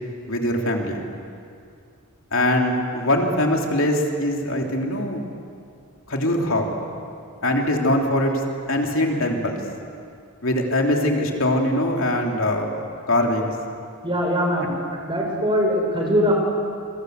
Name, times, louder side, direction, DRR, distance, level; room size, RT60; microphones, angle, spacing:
voice 1, 0.3-1.0 2.3-5.2 6.1-6.7 7.4-8.4 8.7-9.6 10.4-12.7 13.1-13.5, left 1 dB, 65° left, 1 dB, 3.3 m, -22 dB
voice 2, 14.0-14.8 15.0-16.3, equal, 25° right, 1 dB, 5.4 m, -21 dB
28.0 x 25.0 x 8.0 m, 2.4 s
head